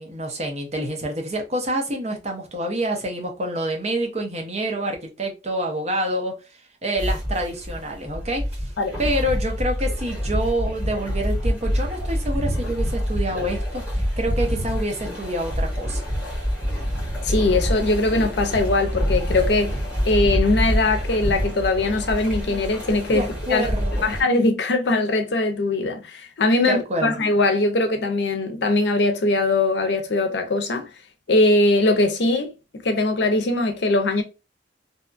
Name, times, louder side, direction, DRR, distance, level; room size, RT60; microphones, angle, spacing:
voice 1, 0.0-6.4 6.8-8.7 9.0-16.1 23.1-24.1 26.7-27.2, right 1 dB, 35° right, 0.7 m, -27 dB
sound 1, 7.0-24.2, equal, 5° right, 1.3 m, -26 dB
voice 2, 17.2-19.8 20.1-23.7 24.0-30.9 31.3-32.5 32.8-34.2, left 2 dB, 70° left, 0.6 m, -21 dB
2.7 x 2.3 x 2.4 m
head